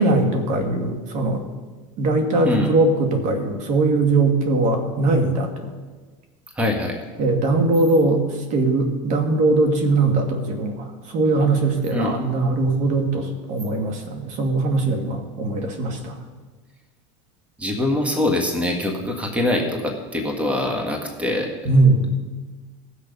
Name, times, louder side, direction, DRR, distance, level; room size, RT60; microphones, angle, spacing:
voice 1, 0.0-1.4 2.0-5.7 7.2-16.2 21.7-22.1, right 2 dB, 50° right, 4 dB, 2.0 m, -20 dB
voice 2, 6.6-7.0 11.9-12.1 17.6-21.5, left 1 dB, 10° right, 2 dB, 1.6 m, -23 dB
18.0 x 6.6 x 5.4 m, 1.3 s
supercardioid pair, 125°, 16 cm